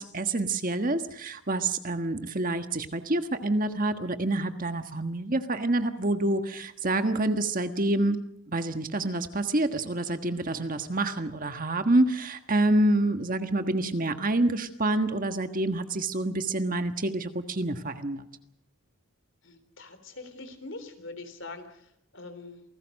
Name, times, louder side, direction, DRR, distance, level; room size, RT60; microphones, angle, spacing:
voice 1, 0.0-8.2 8.5-18.2, right 2 dB, 40° right, 8 dB, 1.5 m, -27 dB
voice 2, 19.4-22.6, left 3 dB, 60° left, 10 dB, 3.7 m, -43 dB
28.0 x 19.0 x 6.5 m, 0.71 s
head